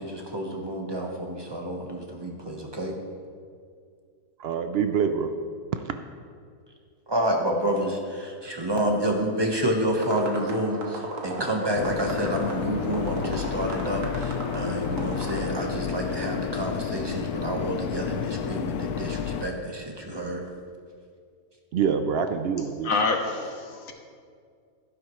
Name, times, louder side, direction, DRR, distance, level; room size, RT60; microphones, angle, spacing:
voice 1, 0.0-2.9 7.1-20.4, right 1 dB, 20° right, 1 dB, 1.1 m, -29 dB
voice 2, 4.4-5.3 5.7-5.9 21.7-22.9, right 6 dB, 75° right, 8 dB, 0.5 m, -25 dB
sound 1, 10.0-15.4, right 2 dB, 60° right, 1.7 m, -37 dB
sound 2, 11.8-19.5, left 7 dB, 80° left, 1.1 m, -31 dB
voice 3, 22.8-23.9, left 3 dB, 65° left, 4 dB, 1.3 m, -26 dB
12.5 x 11.5 x 3.1 m, 2.2 s
omnidirectional pair, 1.6 m